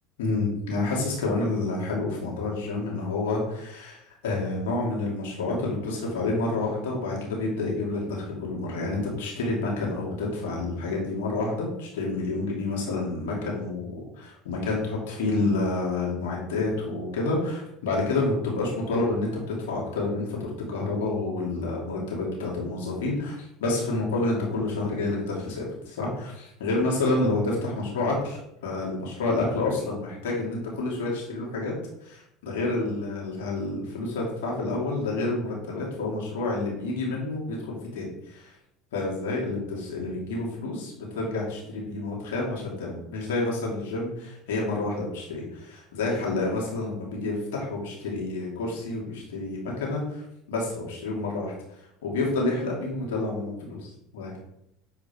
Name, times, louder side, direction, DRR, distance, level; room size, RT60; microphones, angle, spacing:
voice 1, 0.2-31.7 32.0-38.5 38.9-50.2 50.5-53.9 54.1-54.4, left 2 dB, 85° left, -3 dB, 2.7 m, -29 dB
8.7 x 5.1 x 4.5 m, 0.80 s
supercardioid pair, 95°, 0 cm